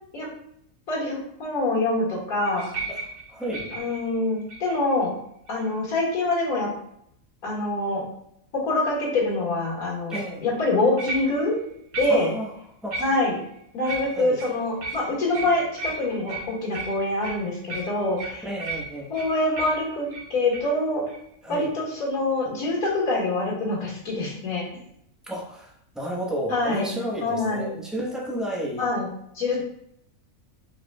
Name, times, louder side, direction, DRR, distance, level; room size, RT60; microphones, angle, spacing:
voice 1, 0.9-2.7 3.8-5.2 5.5-6.7 7.4-8.0 8.5-11.6 12.0-12.3 13.0-13.3 13.7-18.4 19.1-21.0 21.5-24.7 26.5-26.9 27.2-27.7 28.8-29.1 29.3-29.6, left 2 dB, 85° left, -4 dB, 2.2 m, -25 dB
sound 1, 2.4-4.9 5.5-5.9 10.1-10.4 11.0-11.6 11.9-12.4 12.9-13.5 13.8-20.7 21.1-21.2 21.5-21.6, right 3 dB, 80° right, 1.6 m, -36 dB
voice 2, 3.3-3.7 10.1-10.4 12.1-12.5 12.8-13.0 14.1-14.4 18.4-19.1 21.4-21.7 25.2-28.9, equal, ahead, -3 dB, 0.7 m, -32 dB
4.8 x 4.7 x 2.2 m, 0.73 s
omnidirectional pair, 1.5 m